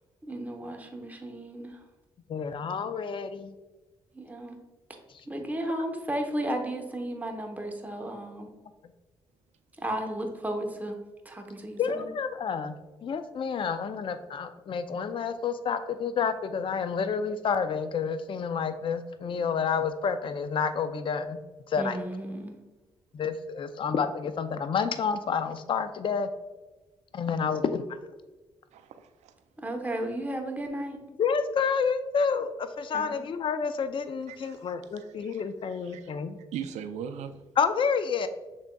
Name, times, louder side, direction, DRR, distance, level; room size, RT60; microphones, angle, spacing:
voice 1, 0.3-1.8 4.1-4.6 5.3-8.5 9.8-11.0 11.2-12.1 21.8-22.6 29.6-31.0 32.9-33.2, right 1 dB, 15° right, 3 dB, 0.9 m, -34 dB
voice 2, 2.3-3.5 11.8-12.8 13.0-21.4 21.7-22.0 23.1-26.3 27.1-27.8 31.2-36.4 37.6-38.3, left 6 dB, 45° left, 10 dB, 0.4 m, -29 dB
voice 3, 28.7-29.3 34.3-34.6 35.0-35.4 35.7-36.1 36.5-37.4, right 8 dB, 80° right, 10 dB, 0.4 m, -40 dB
6.4 x 3.5 x 2.2 m, 1.2 s
supercardioid pair, 60°, 12 cm